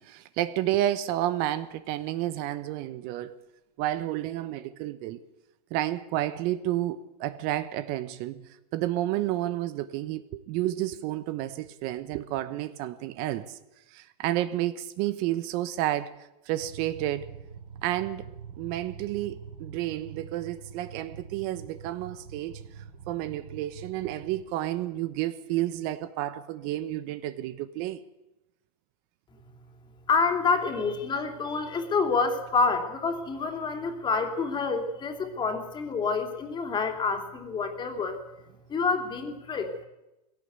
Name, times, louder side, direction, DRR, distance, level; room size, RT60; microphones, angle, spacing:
voice 1, 0.0-3.3 3.8-5.2 5.7-13.6 13.9-17.3 17.8-18.3 18.6-28.0, right 14 dB, 50° right, 1.1 m, -31 dB
sound 1, 16.6-24.4, right 7 dB, 90° right, 4.9 m, -45 dB
voice 2, 30.1-38.2 38.7-39.9, left 4 dB, 20° left, 3.1 m, -28 dB
19.5 x 17.0 x 8.1 m
supercardioid pair, 130°, 21 cm